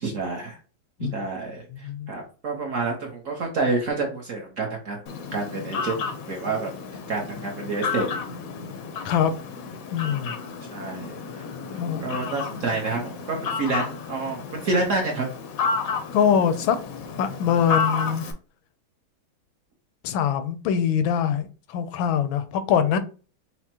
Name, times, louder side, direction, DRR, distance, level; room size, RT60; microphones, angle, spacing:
voice 1, 0.0-0.6 1.1-5.0 5.3-6.7 7.1-8.2 10.7-11.4 12.0-15.3, right 3 dB, 55° right, 0.9 m, -28 dB
voice 2, 1.7-2.1 9.0-9.3 9.9-10.3 11.8-12.0 16.1-16.8 17.2-18.2 20.0-23.0, left 8 dB, 85° left, 1.4 m, -23 dB
Fowl, 5.1-18.3, left 5 dB, 70° left, 0.8 m, -32 dB
5.9 x 2.1 x 2.8 m
omnidirectional pair, 2.1 m